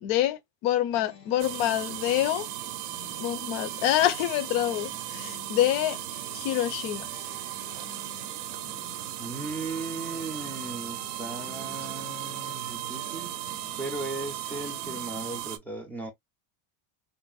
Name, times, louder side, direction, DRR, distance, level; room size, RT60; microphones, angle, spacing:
voice 1, 0.0-2.5 3.2-6.0 6.3-7.1, left 13 dB, 70° left, 0.7 m, -26 dB
sound 1, 0.9-15.4, left 6 dB, 85° left, 1.1 m, -50 dB
sound 2, 1.4-15.6, right 15 dB, 55° right, 0.5 m, -36 dB
voice 2, 9.2-13.3 13.8-16.1, right 2 dB, 5° left, 0.3 m, -37 dB
3.9 x 2.0 x 2.3 m
cardioid pair, 170°, 50 cm